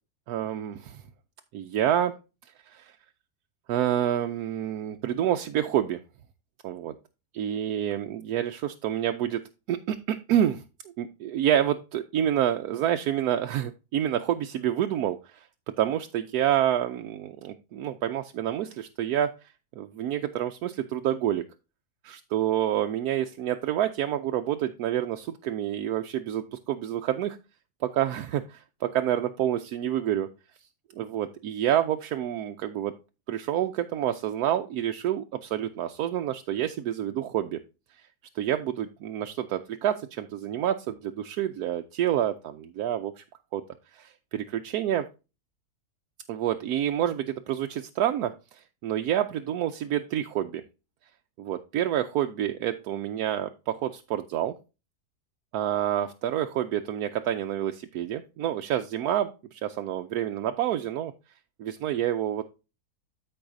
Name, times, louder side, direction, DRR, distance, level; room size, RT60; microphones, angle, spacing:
voice 1, 0.3-1.0 1.5-2.1 2.7-2.9 3.7-6.0 6.6-6.9 7.3-9.4 9.7-10.6 11.0-15.2 15.8-19.3 19.8-21.4 22.0-27.4 27.8-30.3 31.0-32.9 33.3-37.6 38.4-43.2 43.5-43.6 44.0-45.0 46.3-48.3 48.8-50.6 51.4-54.5 55.5-61.1 61.6-62.4, right 11 dB, 75° right, 6 dB, 1.1 m, -28 dB
13.0 x 4.8 x 2.6 m, 0.29 s
omnidirectional pair, 1.7 m